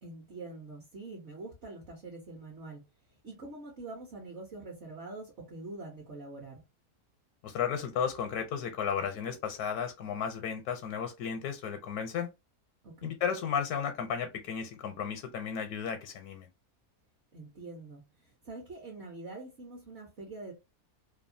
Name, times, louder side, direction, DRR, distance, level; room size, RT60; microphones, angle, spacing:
voice 1, 0.0-2.8 3.2-6.6 12.8-13.1 17.3-20.5, right 2 dB, 55° right, 1.0 m, -45 dB
voice 2, 7.4-12.3 13.0-16.5, left 7 dB, 80° left, 1.1 m, -34 dB
2.9 x 2.2 x 2.5 m
omnidirectional pair, 1.6 m